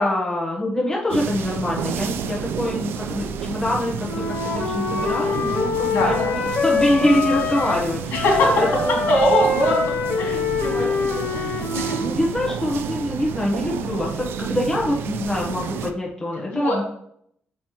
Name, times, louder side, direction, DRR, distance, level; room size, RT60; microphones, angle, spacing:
voice 1, 0.0-8.1 8.6-9.0 12.0-16.8, left 1 dB, 15° left, -4 dB, 1.2 m, -24 dB
sound 1, 1.1-15.9, right 7 dB, 75° right, 0.4 m, -30 dB
Wind instrument woodwind instrument, 4.1-7.9 8.1-12.1, left 3 dB, 50° left, 1.3 m, -24 dB
voice 2, 5.9-6.3 8.1-8.7 9.1-9.8 10.2-12.0 16.5-16.7, left 2 dB, 75° left, -2 dB, 2.7 m, -22 dB
7.1 x 5.3 x 3.1 m, 0.70 s
cardioid pair, 140°, 4 cm